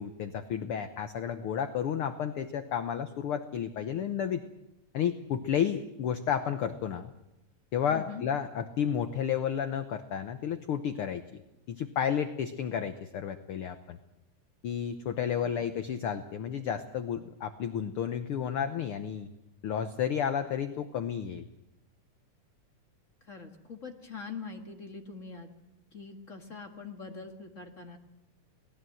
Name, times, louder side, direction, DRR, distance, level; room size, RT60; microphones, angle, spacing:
voice 1, 0.0-4.4 4.9-7.1 7.7-11.4 11.7-14.0 14.6-19.3 19.6-21.5, left 8 dB, 70° left, 9 dB, 1.3 m, -32 dB
voice 2, 7.9-8.2 15.4-15.6 23.2-25.5 25.9-28.0, left 5 dB, 30° left, 4 dB, 1.7 m, -43 dB
26.0 x 18.5 x 7.7 m, 0.90 s
omnidirectional pair, 3.7 m